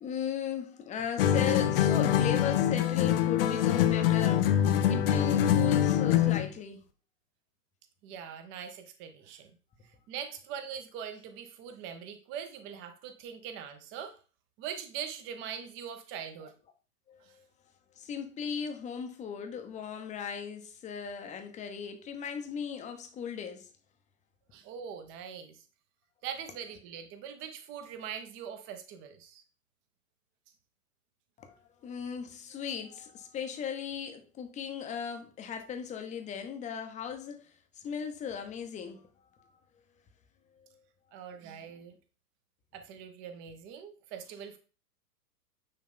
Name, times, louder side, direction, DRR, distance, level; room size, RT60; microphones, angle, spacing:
voice 1, 0.0-6.8 17.1-17.4 18.0-23.7 31.4-39.1 39.4-39.5 40.6-40.7, left 7 dB, 15° left, 1.0 m, -37 dB
sound 1, 1.2-6.5, left 10 dB, 35° left, 0.7 m, -24 dB
voice 2, 8.0-9.5 10.1-14.2 14.6-16.5 17.2-17.3 24.5-25.6 26.2-29.4 41.1-42.0 42.7-44.6, right 8 dB, 25° right, 1.0 m, -42 dB
9.5 x 3.7 x 3.8 m
figure-of-eight pair, 110°, 47 cm